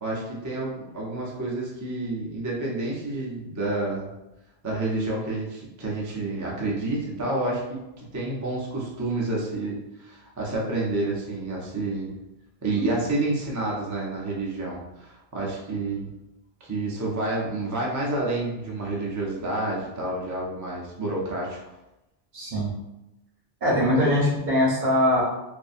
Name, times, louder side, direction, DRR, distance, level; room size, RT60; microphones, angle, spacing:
voice 1, 0.0-4.1 4.6-12.1 12.6-16.1 16.6-21.6, right 2 dB, 30° right, -4 dB, 0.3 m, -29 dB
voice 2, 22.3-22.7 23.6-25.2, left 1 dB, 50° right, -5 dB, 0.9 m, -21 dB
2.6 x 2.5 x 2.4 m, 0.95 s
omnidirectional pair, 1.0 m